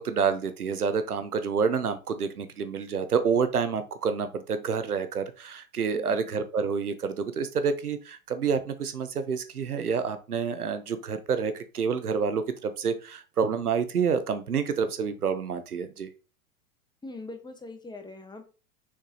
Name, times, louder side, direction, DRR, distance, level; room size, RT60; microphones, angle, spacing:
voice 1, 0.0-16.1, right 6 dB, 90° right, 10 dB, 1.0 m, -28 dB
voice 2, 5.9-6.3 17.0-18.5, left 2 dB, 10° left, 6 dB, 1.3 m, -42 dB
6.3 x 5.9 x 3.0 m, 0.33 s
hypercardioid pair, 100°, 43 cm